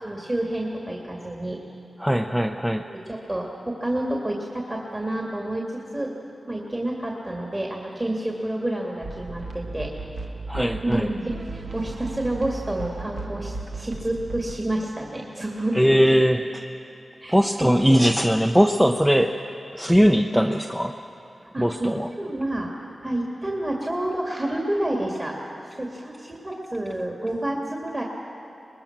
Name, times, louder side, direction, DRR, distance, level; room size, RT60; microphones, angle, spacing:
voice 1, 0.0-1.6 2.7-5.6 5.9-6.1 6.5-9.9 10.8-15.8 17.2-18.0 20.3-20.4 21.5-21.9 22.2-22.7 23.0-25.4 25.8-28.0, right 1 dB, 25° right, -1 dB, 2.2 m, -29 dB
voice 2, 2.0-2.9 10.5-11.1 15.7-16.4 17.3-19.4 19.7-20.9 21.6-22.1, equal, 5° right, 4 dB, 0.7 m, -20 dB
sound 1, 9.0-14.6, right 3 dB, 70° right, 1.4 m, -35 dB
22.5 x 20.5 x 6.0 m, 2.7 s
wide cardioid pair, 70°, 0 cm